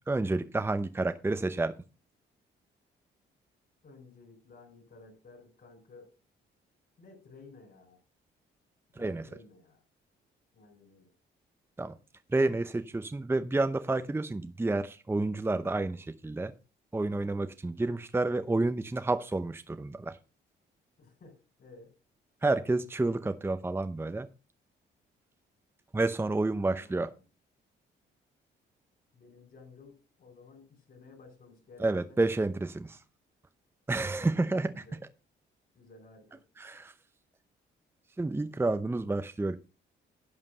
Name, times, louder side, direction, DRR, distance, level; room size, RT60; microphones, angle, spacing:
voice 1, 0.1-1.7 9.0-9.2 11.8-11.9 12.3-16.5 16.9-20.2 22.4-24.3 25.9-27.1 31.8-33.0 33.9-34.8 36.6-36.9 38.2-39.6, right 2 dB, 10° right, 10 dB, 0.7 m, -30 dB
voice 2, 3.8-6.1 7.0-8.0 8.9-9.8 10.5-11.1 21.0-21.9 26.7-27.2 29.1-32.2 34.1-34.5 34.7-35.0 35.7-36.4, left 3 dB, 45° left, 0 dB, 4.9 m, -54 dB
11.0 x 5.1 x 6.4 m, 0.33 s
cardioid pair, 90°, 20 cm